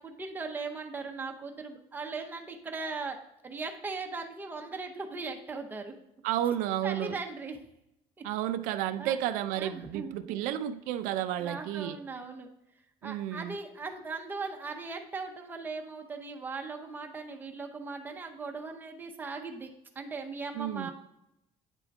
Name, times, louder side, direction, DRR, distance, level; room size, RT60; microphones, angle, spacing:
voice 1, 0.0-3.2 3.4-5.9 6.8-7.6 8.2-8.3 9.0-9.1 9.6-10.4 11.4-12.5 13.0-19.7 20.0-20.9, right 4 dB, 15° right, 3 dB, 0.6 m, -39 dB
voice 2, 6.2-7.2 8.2-12.0 13.0-13.6 20.5-20.9, right 11 dB, 85° right, 10 dB, 0.4 m, -32 dB
9.0 x 3.6 x 3.5 m, 0.83 s
cardioid pair, 165°, 13 cm